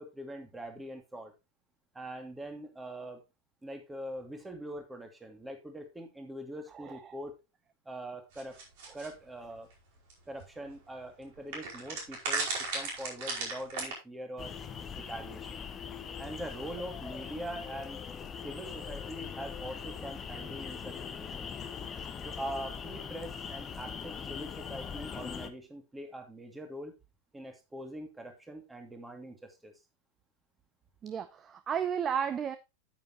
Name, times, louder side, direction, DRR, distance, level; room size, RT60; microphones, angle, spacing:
voice 1, 0.0-1.3 1.9-3.2 3.6-7.3 7.9-8.6 8.9-9.7 10.3-14.5 14.9-15.6 16.2-18.0 18.4-21.5 22.2-26.9 27.3-29.7, right 1 dB, 10° right, 2.4 m, -43 dB
sound 1, 8.4-9.1 10.1-10.2 10.4-10.5 11.5-13.9, right 3 dB, 55° right, 5.1 m, -34 dB
sound 2, 14.4-25.5, left 7 dB, 20° left, 1.0 m, -41 dB
voice 2, 31.0-32.6, right 8 dB, 25° right, 0.6 m, -33 dB
9.3 x 9.2 x 2.9 m
figure-of-eight pair, 90°, 0 cm